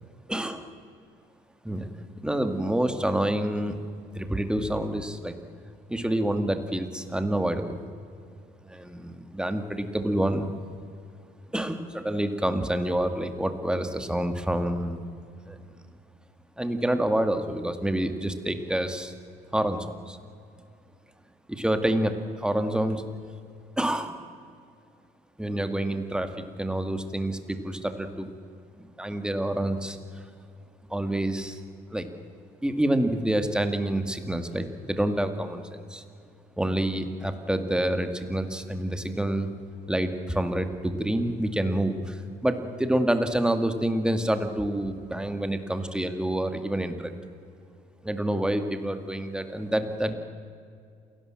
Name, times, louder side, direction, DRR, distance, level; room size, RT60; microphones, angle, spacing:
voice 1, 0.3-0.6 1.6-3.8 4.1-5.4 5.9-7.8 8.6-10.5 11.5-15.0 15.5-15.6 16.6-19.1 19.5-20.2 21.5-23.1 23.8-24.2 25.4-28.3 28.8-30.0 30.9-31.6 31.9-32.1 32.6-36.0 36.6-39.5 39.9-47.1 48.0-50.1, right 1 dB, 5° right, 8 dB, 2.1 m, -27 dB
28.0 x 18.0 x 7.7 m, 2.4 s
cardioid pair, 110°, 17 cm